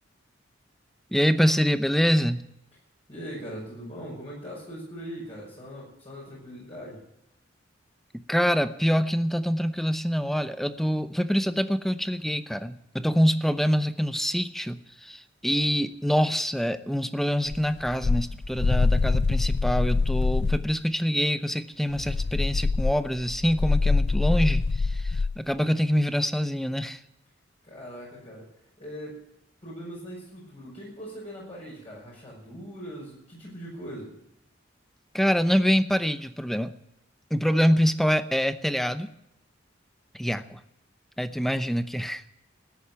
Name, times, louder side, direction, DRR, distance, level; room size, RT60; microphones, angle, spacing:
voice 1, 1.1-2.5 8.3-27.0 35.1-36.7 37.3-39.1 40.1-40.6 41.2-42.2, equal, ahead, 11 dB, 0.7 m, -25 dB
voice 2, 3.1-7.0 27.6-28.5 28.8-29.2 29.6-34.1, equal, 35° left, -5 dB, 5.9 m, -40 dB
sound 1, 17.5-20.7 21.9-25.4, left 3 dB, 60° left, 0.5 m, -24 dB
14.0 x 10.0 x 8.7 m, 0.81 s
head